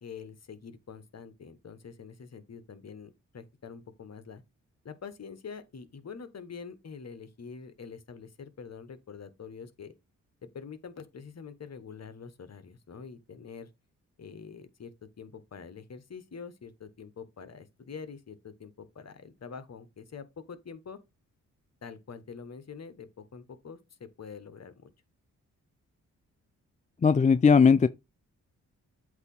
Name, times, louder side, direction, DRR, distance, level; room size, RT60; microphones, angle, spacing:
voice 1, 0.0-4.4 4.8-9.9 10.4-13.7 14.2-21.0 21.8-24.9, left 6 dB, 50° left, 1.3 m, -45 dB
voice 2, 27.0-27.9, left 5 dB, 20° left, 0.4 m, -19 dB
8.0 x 2.8 x 5.4 m
supercardioid pair, 45°, 34 cm